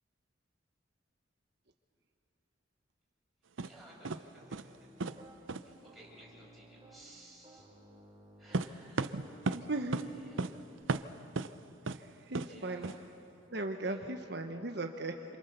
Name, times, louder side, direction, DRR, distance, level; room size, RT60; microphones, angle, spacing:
voice 1, 3.6-4.9 5.6-7.7 8.4-9.3 9.7-10.9 12.1-13.0 13.8-14.3, right 1 dB, ahead, -6 dB, 6.9 m, -58 dB
sound 1, 3.6-3.7 4.0-4.2 4.5-4.8 5.0-5.2 5.5-5.6 8.5-9.6 9.9-10.1 10.4-10.5 10.9-11.5 11.9-12.0 12.3-12.5 12.8-13.0, right 3 dB, 85° right, 0.7 m, -34 dB
Piano, 4.4-5.3 5.8-7.1 7.4-10.8, right 1 dB, 20° right, 3.7 m, -57 dB
voice 2, 9.5-10.0 11.9-12.9 13.5-15.2, right 2 dB, 60° right, 4 dB, 1.2 m, -37 dB
28.0 x 26.5 x 6.8 m, 2.9 s
head